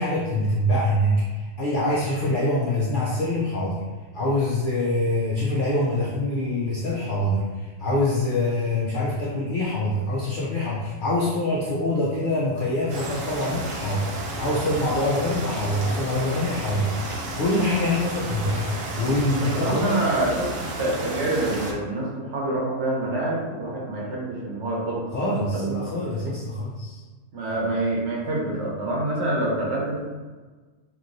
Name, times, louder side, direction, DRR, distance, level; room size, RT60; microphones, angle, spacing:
voice 1, 0.0-3.8 4.1-18.7 19.0-20.0 25.1-27.0, left 1 dB, 65° left, -6 dB, 0.5 m, -25 dB
sound 1, 12.9-21.7, right 1 dB, 90° right, 1.0 m, -32 dB
voice 2, 19.4-20.5 20.8-25.8 27.3-30.0, right 2 dB, 65° right, -4 dB, 1.0 m, -26 dB
3.0 x 2.5 x 2.5 m, 1.3 s
omnidirectional pair, 1.3 m